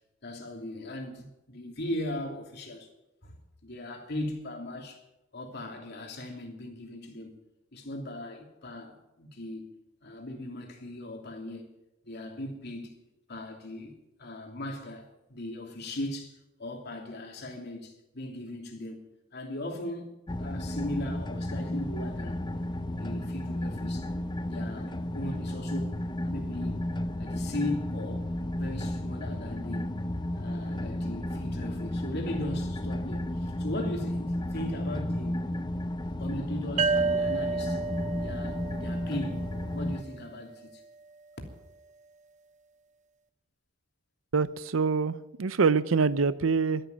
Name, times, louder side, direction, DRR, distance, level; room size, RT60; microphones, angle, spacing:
voice 1, 0.2-2.9 3.2-3.3 3.6-5.0 5.3-7.4 7.7-9.7 10.0-11.7 12.0-12.9 13.3-20.1 20.4-22.4 22.9-24.1 24.4-26.9 27.2-28.3 28.5-29.9 30.3-35.4 36.2-37.8 38.1-39.5 39.7-40.8, left 1 dB, 55° left, 3.0 m, -38 dB
sound 1, 20.3-40.0, left 1 dB, 20° left, 0.7 m, -33 dB
sound 2, 36.8-40.2, right 4 dB, 35° right, 0.6 m, -31 dB
voice 2, 44.3-45.1 45.4-46.8, right 5 dB, 80° right, 0.6 m, -25 dB
12.5 x 11.0 x 9.3 m
head